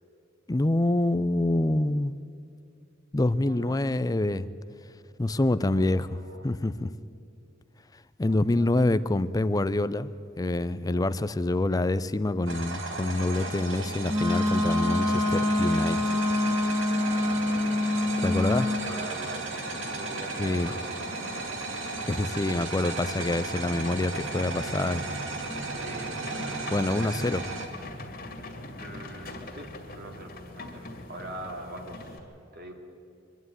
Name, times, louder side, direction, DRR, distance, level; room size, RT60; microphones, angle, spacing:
voice 1, 0.5-2.1 3.1-4.5 5.2-6.9 8.2-10.1 10.4-16.0 18.2-18.7 20.4-20.7 22.1-25.0 26.7-27.5, left 2 dB, 20° left, 15 dB, 0.5 m, -26 dB
voice 2, 3.4-3.8 5.7-6.4 8.2-8.7 18.2-21.4 25.8-26.2 28.8-32.2 32.5-32.7, right 1 dB, 55° right, 2 dB, 2.6 m, -43 dB
sound 1, 12.5-27.7, right 3 dB, 80° right, 2.3 m, -35 dB
Wind instrument woodwind instrument, 14.0-18.8, left 1 dB, 20° right, 2.1 m, -26 dB
sound 2, 14.5-32.2, left 1 dB, 50° left, 2.4 m, -43 dB
24.5 x 11.5 x 9.5 m, 2.5 s
head